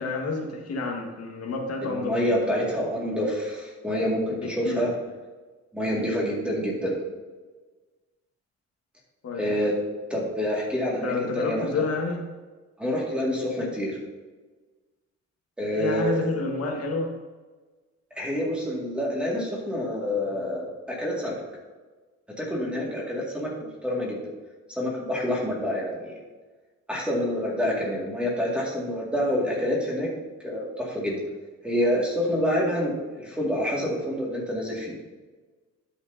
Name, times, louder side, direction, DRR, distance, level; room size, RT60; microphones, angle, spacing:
voice 1, 0.0-2.7 4.3-4.8 9.2-9.7 11.0-12.3 15.8-17.1, left 3 dB, 55° left, 1 dB, 1.7 m, -30 dB
voice 2, 1.8-4.9 5.7-7.0 9.4-9.7 10.1-11.9 12.8-14.0 15.6-16.1 18.2-21.4 22.4-23.5 23.8-24.2 24.7-26.2 26.9-30.1 30.4-31.2 31.6-35.0, equal, 5° right, -4 dB, 2.1 m, -27 dB
11.5 x 8.0 x 2.8 m, 1.3 s
wide cardioid pair, 180°, 29 cm